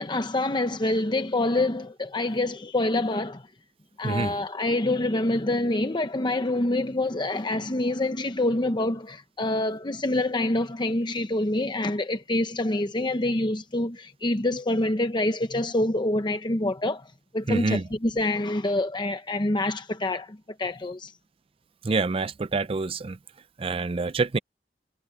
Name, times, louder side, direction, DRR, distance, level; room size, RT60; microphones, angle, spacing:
voice 1, 0.0-3.5 4.0-17.1 17.3-21.1, left 2 dB, 25° left, 0.9 m, -26 dB
voice 2, 17.5-17.8 21.8-23.2 23.6-24.4, right 3 dB, 30° right, 0.4 m, -26 dB
head